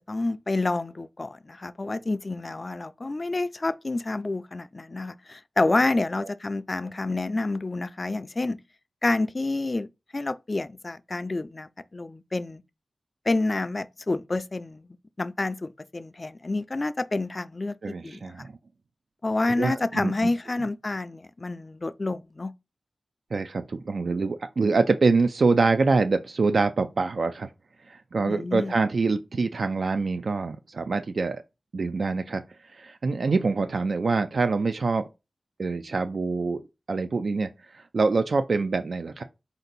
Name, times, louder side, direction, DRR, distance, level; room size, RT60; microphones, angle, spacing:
voice 1, 0.0-8.6 9.0-9.9 10.1-12.6 13.3-14.9 15.2-18.3 19.2-22.5 28.2-28.7, left 2 dB, 40° left, 0.3 m, -28 dB
voice 2, 17.8-18.5 19.6-20.3 23.3-27.5 27.9-31.4 31.7-32.4 32.7-35.1 35.6-36.6 36.9-39.2, right 4 dB, 70° right, 0.3 m, -25 dB
4.3 x 2.7 x 4.0 m
wide cardioid pair, 65°, 0 cm